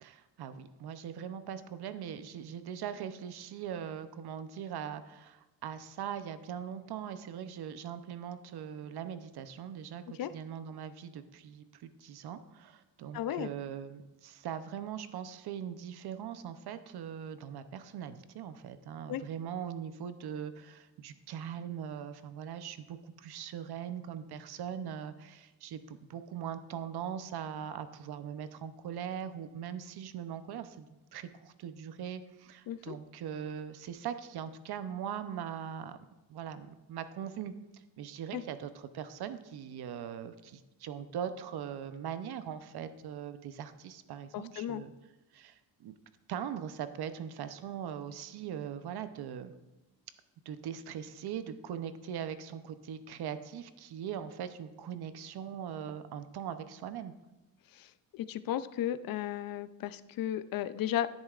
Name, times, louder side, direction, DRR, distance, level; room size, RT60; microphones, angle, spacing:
voice 1, 0.0-36.0 36.3-44.9 45.3-45.9 46.3-49.5 50.5-57.1, right 8 dB, 60° right, 11 dB, 0.7 m, -41 dB
voice 2, 13.1-13.5 19.1-19.2 32.7-33.0 38.3-38.4 44.3-44.8 57.7-61.1, left 11 dB, 50° left, 14 dB, 0.5 m, -35 dB
10.5 x 10.5 x 2.4 m, 1.1 s
cardioid pair, 150°, 45 cm